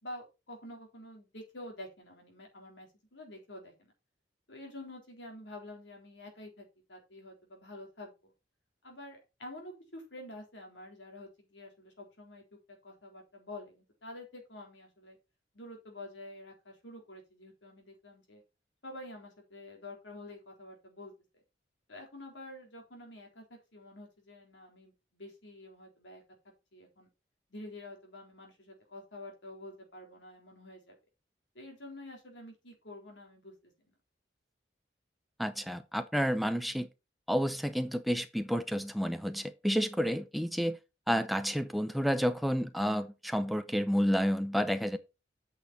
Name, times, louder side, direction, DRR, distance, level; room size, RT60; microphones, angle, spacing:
voice 1, 0.0-3.9 4.5-8.3 8.8-12.4 12.8-15.2 15.5-18.4 18.8-21.1 21.9-26.2 26.7-27.1 27.5-31.0 31.5-33.7, left 1 dB, 80° left, 3.7 m, -48 dB
voice 2, 35.4-36.9 37.3-40.8 41.1-45.0, equal, ahead, 0.7 m, -30 dB
8.3 x 6.4 x 4.1 m
head